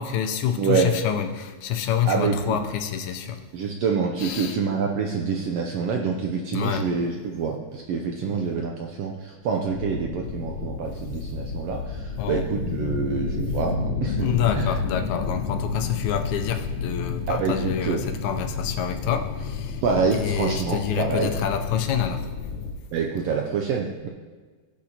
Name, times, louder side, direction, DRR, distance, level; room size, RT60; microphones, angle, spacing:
voice 1, 0.0-3.4 4.2-4.6 6.5-6.9 8.2-8.4 12.2-12.5 14.2-19.8 20.1-22.3, left 9 dB, 85° left, 6 dB, 2.1 m, -27 dB
voice 2, 0.6-0.9 2.0-2.6 3.5-14.7 17.3-18.0 19.8-21.3 22.9-24.1, right 5 dB, 80° right, 1 dB, 1.5 m, -26 dB
sound 1, 9.7-22.7, left 4 dB, 65° left, 1.5 m, -31 dB
16.5 x 6.6 x 2.9 m, 1.4 s
omnidirectional pair, 3.4 m